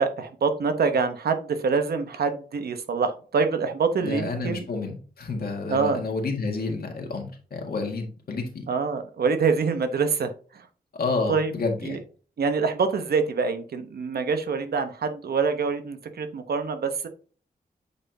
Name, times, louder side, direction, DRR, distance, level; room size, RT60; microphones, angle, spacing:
voice 1, 0.0-4.7 5.7-6.0 8.7-10.7 11.3-11.5 11.8-12.0 12.4-17.1, right 5 dB, 90° right, 8 dB, 0.9 m, -25 dB
voice 2, 4.0-8.7 11.0-12.0, left 3 dB, 80° left, 2 dB, 1.8 m, -29 dB
8.5 x 4.3 x 2.7 m, 0.40 s
wide cardioid pair, 90°, 16 cm